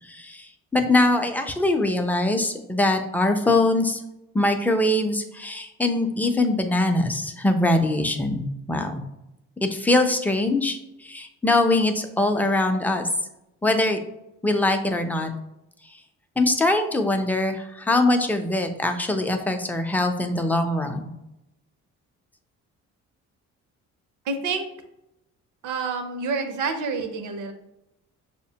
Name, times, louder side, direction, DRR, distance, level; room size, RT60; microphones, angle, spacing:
voice 1, 0.1-4.0 4.3-9.0 9.6-13.1 13.6-14.0 14.4-15.3 16.4-21.1, left 2 dB, 5° left, 5 dB, 0.4 m, -22 dB
voice 2, 24.3-24.6 25.6-27.5, right 4 dB, 80° right, 6 dB, 0.7 m, -28 dB
6.3 x 2.1 x 2.8 m, 0.89 s
cardioid pair, 90°, 30 cm